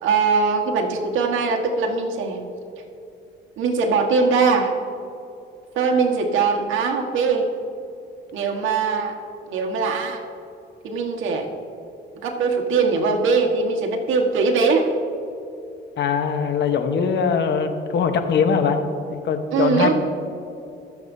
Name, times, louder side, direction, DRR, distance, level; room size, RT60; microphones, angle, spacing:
voice 1, 0.0-2.4 3.6-4.7 5.7-7.5 8.3-9.1 9.5-10.2 10.8-11.5 12.2-14.9 19.5-19.9, right 4 dB, 80° right, 2 dB, 1.4 m, -21 dB
voice 2, 16.0-19.9, left 6 dB, 65° left, 7 dB, 1.1 m, -22 dB
21.0 x 7.3 x 2.7 m, 2.7 s
cardioid pair, 90°, 20 cm